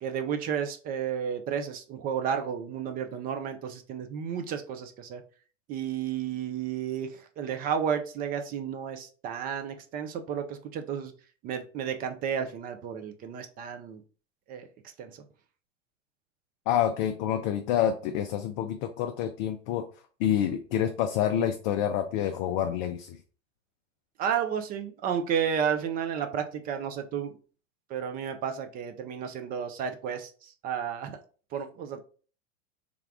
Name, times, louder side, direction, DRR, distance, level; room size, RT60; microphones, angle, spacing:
voice 1, 0.0-5.2 5.7-11.1 11.4-14.0 14.5-14.7 15.0-15.2 24.2-27.4 27.9-31.2 31.5-32.0, right 8 dB, 25° right, 7 dB, 0.4 m, -32 dB
voice 2, 16.7-19.8 20.2-23.2, left 10 dB, 40° left, 6 dB, 0.4 m, -27 dB
3.5 x 2.3 x 3.4 m, 0.39 s
hypercardioid pair, 95°, 39 cm